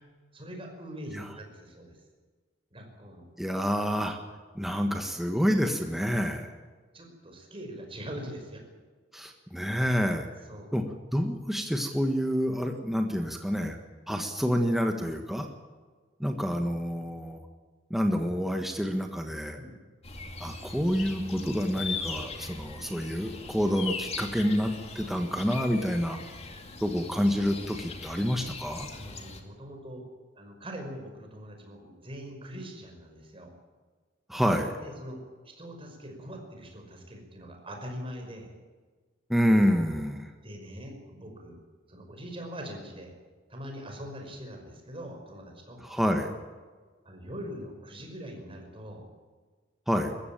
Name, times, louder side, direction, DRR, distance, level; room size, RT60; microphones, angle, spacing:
voice 1, 0.3-2.0 2.7-3.3 6.9-8.6 10.5-10.8 19.5-19.8 28.9-30.1 30.4-33.5 34.8-35.2 35.6-38.5 40.4-41.6 41.9-43.1 43.5-45.8 47.0-49.0, equal, 30° right, 3 dB, 5.7 m, -42 dB
voice 2, 3.4-4.2 4.5-6.5 9.1-10.3 10.7-10.8 11.1-13.8 14.1-15.5 16.2-17.4 17.9-19.6 20.4-26.2 26.8-28.9 34.3-34.7 39.3-40.3 45.8-46.3 49.9-50.1, equal, ahead, 3 dB, 1.5 m, -28 dB
sound 1, 20.0-29.4, left 4 dB, 35° left, 2.4 m, -40 dB
21.0 x 15.0 x 9.2 m, 1.4 s
head